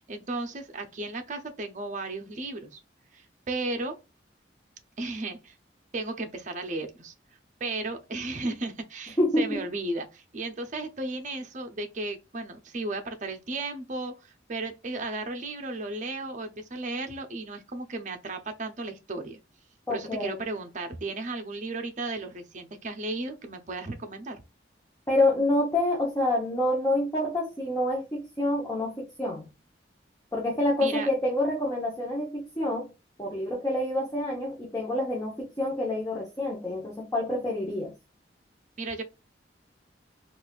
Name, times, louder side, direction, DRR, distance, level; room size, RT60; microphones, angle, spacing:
voice 1, 0.0-2.8 3.1-4.0 5.0-5.6 5.9-7.1 7.6-19.4 19.9-24.4 30.8-31.1 38.8-39.0, right 2 dB, 40° right, 0.6 m, -34 dB
voice 2, 9.2-9.6 19.9-20.4 25.1-29.5 30.3-32.9 33.2-37.9, left 1 dB, 15° left, 0.9 m, -27 dB
4.0 x 2.4 x 2.3 m
head